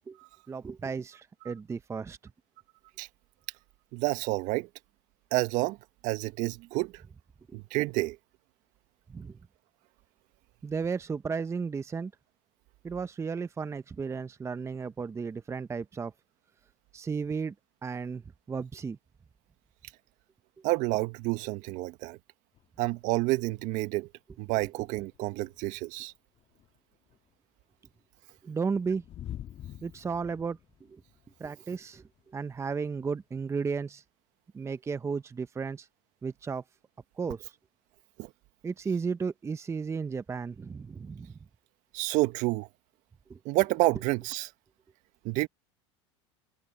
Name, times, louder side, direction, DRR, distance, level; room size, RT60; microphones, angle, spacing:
voice 1, 0.5-2.2 7.5-7.6 9.1-9.4 10.6-12.1 12.8-16.1 16.9-17.5 17.8-18.2 18.5-19.0 28.4-29.0 29.8-30.6 30.9-31.0 31.4-34.0 34.5-35.9 36.2-36.6 37.2-37.5 38.6-41.4 43.3-43.4, right 5 dB, 20° right, 0.8 m, -34 dB
voice 2, 3.9-4.7 5.3-5.8 6.0-7.0 7.5-8.2 20.6-22.2 22.8-24.1 24.4-26.1 38.2-38.3 41.9-42.7 43.5-44.5 45.2-45.5, right 21 dB, 60° right, 1.7 m, -29 dB
sound 1, 22.5-23.9 24.2-24.3 24.6-27.3 27.9-33.4, left 11 dB, 40° left, 2.1 m, -48 dB
hypercardioid pair, 95°, 15 cm